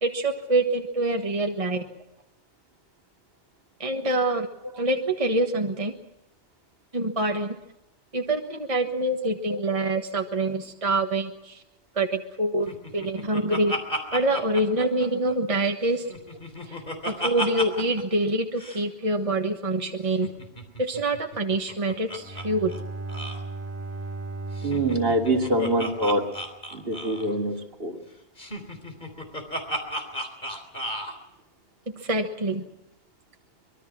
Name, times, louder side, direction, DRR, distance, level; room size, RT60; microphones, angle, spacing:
voice 1, 0.0-1.9 3.8-4.5 4.8-5.9 6.9-7.5 8.1-11.6 11.9-13.8 14.1-16.1 16.7-16.8 17.0-20.3 20.8-22.7 32.0-32.6, right 2 dB, 30° right, 4 dB, 1.5 m, -26 dB
voice 2, 9.2-9.6 14.8-14.9 24.6-26.3 26.7-28.0, right 1 dB, 60° right, 2 dB, 3.0 m, -25 dB
Laughter, 12.7-15.6 15.9-18.0 18.3-18.4 18.6-18.8 20.1-22.4 22.7-22.8 23.1-23.4 24.5-27.3 28.4-31.1, equal, 45° left, 3.7 m, -34 dB
Bowed string instrument, 22.1-26.6, right 3 dB, 15° right, 3.4 m, -37 dB
25.0 x 22.0 x 6.1 m, 0.92 s
omnidirectional pair, 1.1 m